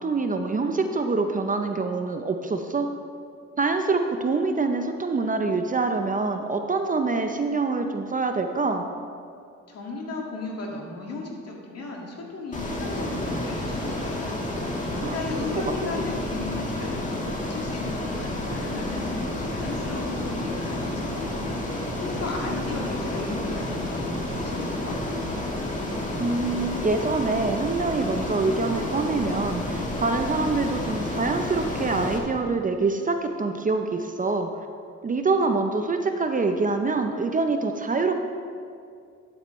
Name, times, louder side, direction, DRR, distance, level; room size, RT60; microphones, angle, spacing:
voice 1, 0.0-2.9 3.6-8.9 15.0-15.2 15.5-15.6 15.9-16.0 26.2-34.5 35.0-38.1, right 3 dB, 25° right, 5 dB, 0.6 m, -25 dB
voice 2, 9.7-14.3 14.9-25.0, left 2 dB, 55° left, -1 dB, 2.1 m, -36 dB
Ocean, 12.5-32.2, left 1 dB, 25° left, 1.7 m, -30 dB
12.0 x 8.6 x 3.1 m, 2.3 s
cardioid pair, 90°, 30 cm